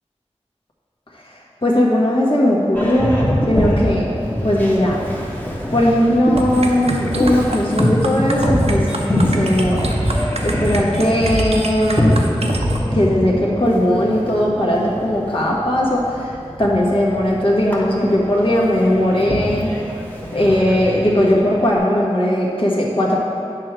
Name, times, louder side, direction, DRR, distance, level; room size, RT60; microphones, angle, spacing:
voice 1, 1.6-3.2 3.5-4.1 4.4-5.0 5.7-9.9 10.4-12.2 12.9-19.7 20.3-23.2, left 1 dB, 50° left, -5 dB, 1.5 m, -18 dB
Boat Water vehicle, 2.7-21.8, equal, 15° left, 1.3 m, -24 dB
sound 1, 6.4-12.8, right 2 dB, 65° right, 0.7 m, -25 dB
8.9 x 3.4 x 6.1 m, 2.6 s
wide cardioid pair, 45°, 11 cm